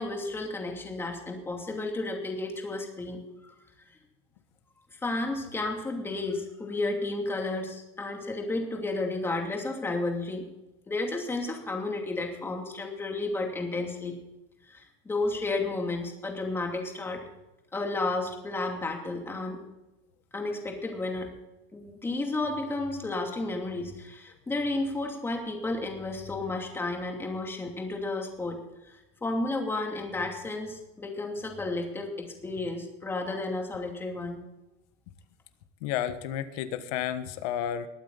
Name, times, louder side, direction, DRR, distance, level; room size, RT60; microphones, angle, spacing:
voice 1, 0.0-3.5 4.9-10.5 10.9-14.1 14.7-17.2 17.7-19.6 20.3-21.4 21.7-34.4, left 2 dB, 10° left, 2 dB, 2.7 m, -32 dB
voice 2, 35.8-37.9, left 10 dB, 80° left, 10 dB, 1.5 m, -31 dB
20.5 x 9.1 x 4.0 m, 0.97 s
cardioid pair, 155°, 19 cm